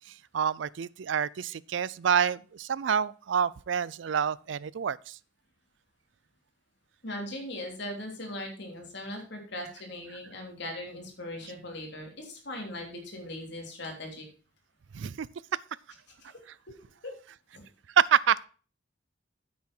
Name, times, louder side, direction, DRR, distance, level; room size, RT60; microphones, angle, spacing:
voice 1, 0.3-5.2 14.9-15.3 18.0-18.4, right 7 dB, 65° right, 0.4 m, -27 dB
voice 2, 7.0-14.2 16.2-16.3 17.0-17.1 17.5-17.6, left 1 dB, 60° left, 3.3 m, -39 dB
9.5 x 8.7 x 4.4 m
head